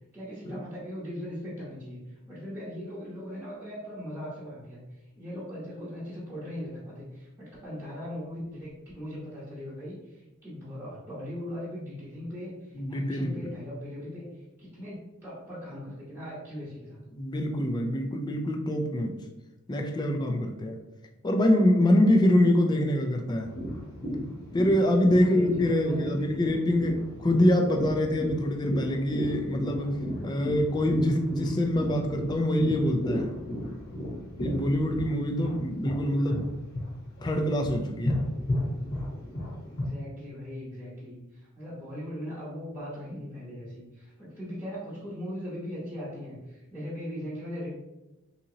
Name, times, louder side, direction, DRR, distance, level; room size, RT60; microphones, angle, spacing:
voice 1, 0.1-2.0 2.3-4.8 5.2-10.0 10.4-12.5 12.9-14.3 14.6-15.0 15.2-17.0 25.1-26.5 36.2-36.3 39.7-41.2 41.5-47.7, equal, 10° right, -10 dB, 1.0 m, -39 dB
voice 2, 12.7-13.4 17.1-19.1 19.7-20.8 21.2-23.5 24.5-29.9 30.2-33.3 34.4-36.4 37.2-38.2, left 1 dB, 20° left, 3 dB, 0.3 m, -25 dB
sound 1, 23.4-36.5 36.7-39.8, left 1 dB, 55° left, 1.0 m, -34 dB
3.8 x 2.9 x 2.7 m, 1.0 s
head